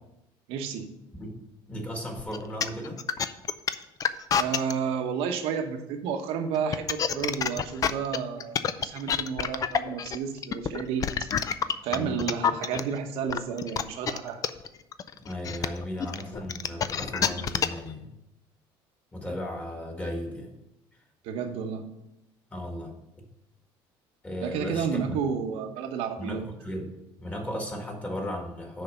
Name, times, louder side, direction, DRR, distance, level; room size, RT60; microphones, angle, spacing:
voice 1, 0.5-0.9 4.4-11.3 11.8-14.4 21.2-21.9 24.4-26.4, right 6 dB, 80° right, 6 dB, 1.1 m, -31 dB
voice 2, 1.7-3.0 11.9-12.2 15.2-18.1 19.1-20.5 22.5-22.9 24.2-25.2 26.2-26.9 27.2-28.8, equal, 15° left, 2 dB, 1.7 m, -35 dB
sound 1, 2.2-4.7 6.5-12.8 13.3-17.9, left 8 dB, 35° left, 0.4 m, -27 dB
6.6 x 5.0 x 6.7 m, 0.88 s
cardioid pair, 130°, 10 cm